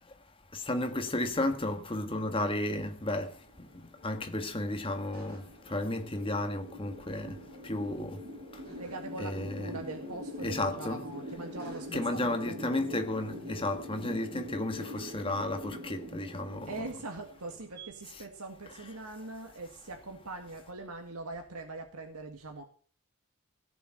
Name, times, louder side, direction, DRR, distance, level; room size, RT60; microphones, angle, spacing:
voice 1, 0.5-3.3 4.0-7.4 7.6-8.2 9.2-9.8 10.4-11.0 11.9-16.7, left 1 dB, 25° left, 1.6 m, -33 dB
sound 1, 3.0-17.9, left 1 dB, 45° right, 5.8 m, -44 dB
voice 2, 8.7-12.6 16.7-22.6, right 2 dB, 85° right, 1.9 m, -42 dB
17.0 x 7.1 x 7.7 m
head